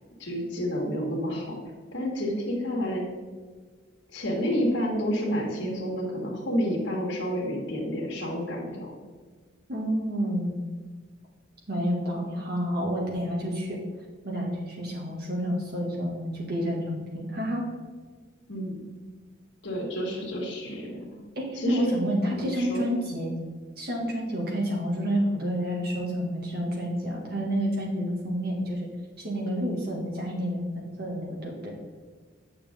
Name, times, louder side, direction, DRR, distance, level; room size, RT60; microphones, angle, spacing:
voice 1, 0.2-3.0 4.1-8.9 18.5-18.8 19.6-21.2 21.5-22.0 22.3-22.8, equal, 65° left, -3 dB, 1.9 m, -30 dB
voice 2, 9.7-10.6 11.7-13.8 14.2-17.7 21.4-23.3 23.8-28.9 29.2-31.7, equal, 50° right, -2 dB, 2.2 m, -29 dB
9.0 x 6.6 x 3.7 m, 1.5 s
head